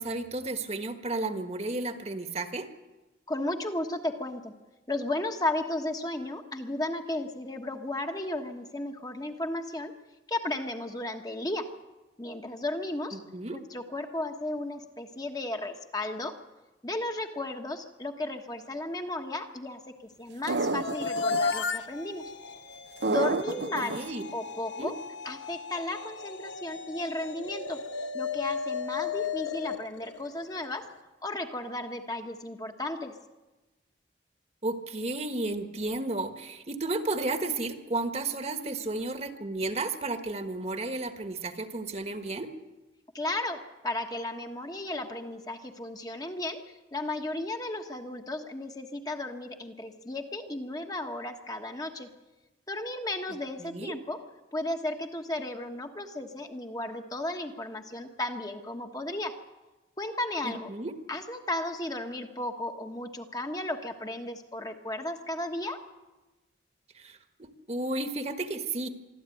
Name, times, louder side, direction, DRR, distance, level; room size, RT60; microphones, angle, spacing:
voice 1, 0.0-2.7 13.1-13.6 23.8-24.2 24.8-24.9 34.6-42.5 53.6-53.9 60.4-60.9 66.9-68.9, right 2 dB, 35° right, 7 dB, 1.4 m, -33 dB
voice 2, 3.3-4.5 4.9-9.9 10.3-11.7 12.2-13.2 13.5-16.4 16.8-22.3 23.1-24.0 24.3-25.0 25.2-27.8 28.1-30.9 31.2-33.2 43.1-46.6 46.9-52.1 52.7-54.2 54.5-59.4 60.0-60.7 61.1-65.9, left 1 dB, 20° left, 4 dB, 1.3 m, -34 dB
sound 1, 20.5-21.4 23.0-24.0, right 3 dB, 70° right, 0.7 m, -28 dB
sound 2, 20.7-30.8, left 5 dB, 80° left, 1.1 m, -35 dB
24.5 x 13.0 x 9.2 m, 1.1 s
head